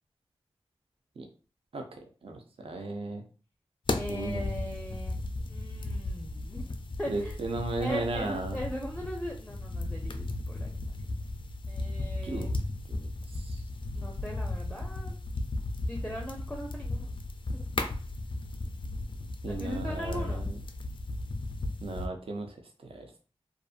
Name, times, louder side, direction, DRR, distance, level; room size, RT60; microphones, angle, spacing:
voice 1, 2.2-3.2 4.1-4.4 7.1-8.6 12.2-12.5 12.9-13.6 19.4-20.6 21.8-23.1, right 2 dB, 65° right, 4 dB, 0.5 m, -35 dB
sound 1, 3.9-22.1, left 2 dB, 55° left, 0.4 m, -35 dB
voice 2, 4.0-5.2 5.5-7.4 7.8-10.2 10.5-11.0 11.7-12.5 13.9-15.2 15.8-17.1 17.5-17.7 19.5-20.4, equal, 5° left, 0 dB, 0.5 m, -39 dB
2.5 x 2.5 x 2.4 m, 0.36 s
cardioid pair, 55°, 10 cm